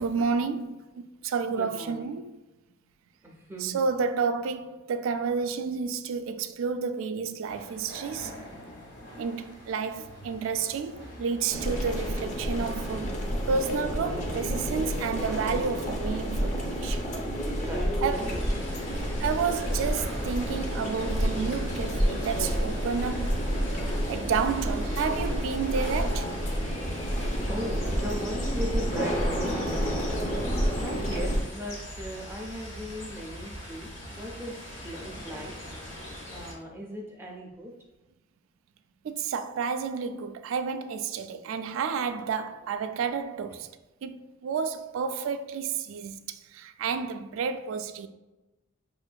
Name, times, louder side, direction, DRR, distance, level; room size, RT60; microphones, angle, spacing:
voice 1, 0.0-2.3 3.6-8.3 9.2-13.2 13.5-17.0 18.0-18.5 19.2-23.5 24.1-26.4 39.0-43.7 44.0-48.1, right 5 dB, 80° right, 0.3 m, -30 dB
voice 2, 1.5-2.2 3.2-3.8 17.6-17.9 27.5-34.5 34.8-35.5 36.3-37.7, equal, 10° right, 0.4 m, -38 dB
sound 1, 7.5-26.3, left 1 dB, 60° left, 1.4 m, -44 dB
sound 2, 11.5-31.4, equal, 35° left, 0.6 m, -29 dB
sound 3, 18.1-36.5, equal, 80° left, 0.9 m, -41 dB
5.5 x 2.5 x 2.2 m
head